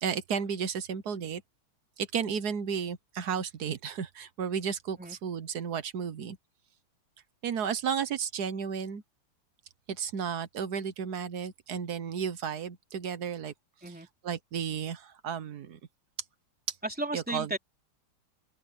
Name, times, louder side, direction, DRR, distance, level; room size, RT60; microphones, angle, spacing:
voice 1, 0.0-1.4 2.0-6.4 7.4-9.0 9.9-13.5 14.2-15.8 16.7-16.8 17.1-17.6, right 7 dB, 55° right, 1.4 m, -33 dB
voice 2, 16.8-17.6, right 1 dB, 5° right, 3.3 m, -34 dB
open air
omnidirectional pair, 2.3 m